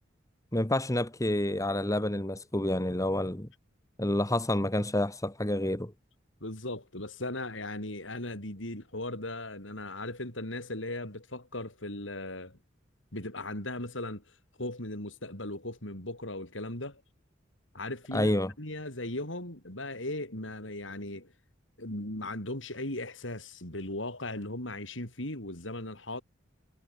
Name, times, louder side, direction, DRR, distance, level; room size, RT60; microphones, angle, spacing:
voice 1, 0.5-3.5 4.0-5.9 18.1-18.5, left 1 dB, 15° left, 2.3 m, -28 dB
voice 2, 6.4-12.6 13.1-14.2 14.6-17.0 17.7-18.3 18.6-21.3 21.8-26.2, left 1 dB, 80° left, 7.3 m, -37 dB
head